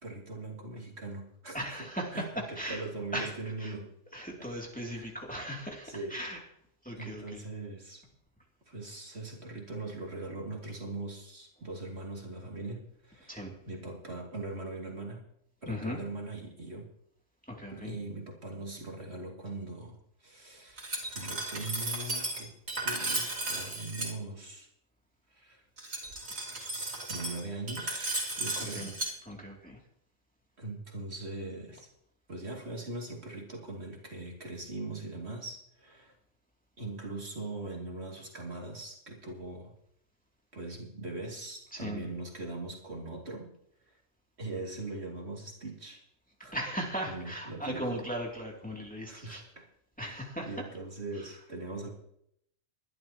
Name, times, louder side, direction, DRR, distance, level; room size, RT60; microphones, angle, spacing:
voice 1, 0.0-1.9 2.1-3.9 4.9-5.1 5.8-6.2 6.9-8.0 8.7-15.2 15.6-16.9 17.7-22.5 22.8-24.7 25.3-25.6 27.1-28.1 28.4-28.9 30.6-31.9 32.3-36.1 36.8-39.7 40.5-43.5 43.9-44.0 44.4-46.0 46.4-46.5 47.0-48.0 49.1-49.6 50.0-51.9, right 2 dB, 55° right, 0 dB, 2.8 m, -41 dB
voice 2, 1.5-2.8 3.1-3.3 3.6-3.7 4.1-6.4 6.8-7.4 13.3-13.5 15.7-16.0 17.5-17.9 28.7-28.9 29.2-29.8 41.7-42.1 46.5-49.4 50.0-50.5 51.2-51.3, equal, 5° left, -1 dB, 2.7 m, -37 dB
Glass, 20.8-24.1 25.8-29.1, right 2 dB, 80° right, 3.6 m, -35 dB
22.5 x 11.5 x 3.0 m, 0.72 s
omnidirectional pair, 1.3 m